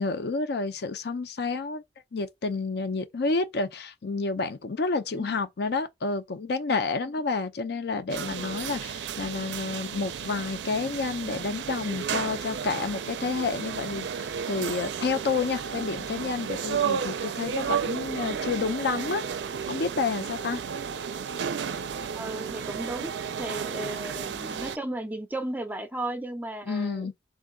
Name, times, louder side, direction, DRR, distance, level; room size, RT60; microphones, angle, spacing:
voice 1, 0.0-1.8 2.1-19.2 19.7-20.6 26.7-27.1, left 4 dB, 65° left, 0.5 m, -30 dB
sound 1, 8.1-24.8, right 7 dB, 80° right, 0.4 m, -33 dB
voice 2, 22.1-27.1, right 1 dB, 10° right, 0.4 m, -35 dB
3.6 x 2.2 x 3.6 m
head